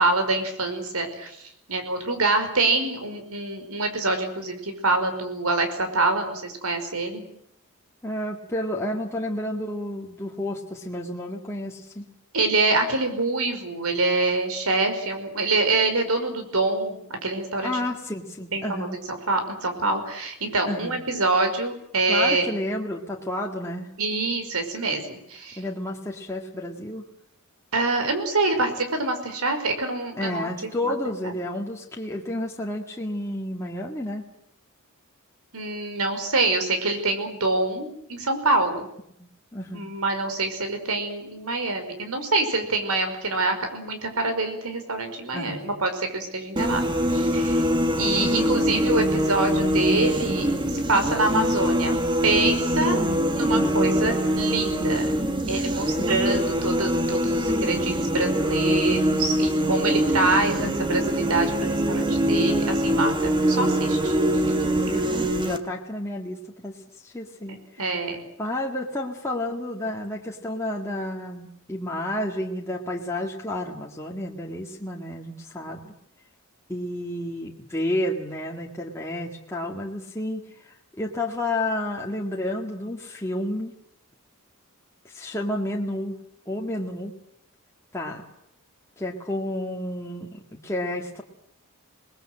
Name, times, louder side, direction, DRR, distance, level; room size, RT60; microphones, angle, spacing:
voice 1, 0.0-1.4 1.7-7.2 12.3-17.8 18.5-22.5 24.0-25.6 27.7-31.0 31.2-31.3 35.5-38.9 39.7-46.8 47.1-47.7 48.0-52.0 52.2-53.0 53.3-55.1 55.5-64.2 67.8-68.2, right 2 dB, 75° right, 7 dB, 5.3 m, -25 dB
voice 2, 8.0-12.1 17.6-19.0 20.6-20.9 22.1-23.9 25.6-27.0 30.2-34.2 39.2-39.9 45.3-45.7 48.1-48.3 53.5-53.8 55.9-56.2 60.6-61.1 64.9-66.8 67.0-67.6 68.0-75.9 76.7-83.7 85.0-86.2 86.5-87.1 87.9-88.2 89.0-91.2, left 1 dB, 15° left, -1 dB, 2.1 m, -31 dB
sound 1, 46.6-65.6, equal, 20° right, 1.8 m, -23 dB
27.0 x 20.5 x 7.8 m, 0.74 s
head